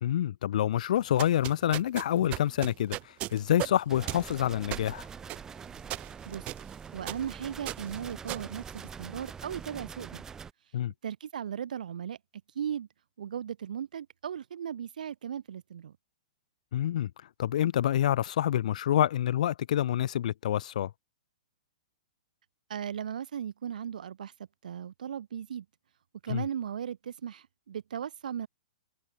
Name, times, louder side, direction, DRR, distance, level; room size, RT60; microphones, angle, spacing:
voice 1, 0.0-3.0 3.3-5.0 10.7-10.9 16.7-17.1 17.4-20.9 26.3-26.4, left 11 dB, 65° left, 0.6 m, -27 dB
sound 1, 1.0-9.4, right 18 dB, 30° right, 2.2 m, -39 dB
sound 2, 3.9-10.5, right 6 dB, 10° right, 0.9 m, -44 dB
voice 2, 6.9-10.2 11.0-12.2 12.5-12.9 13.2-15.9 22.7-24.3 24.6-25.6 26.2-28.5, right 8 dB, 75° right, 2.9 m, -37 dB
hypercardioid pair, 145°, 4 cm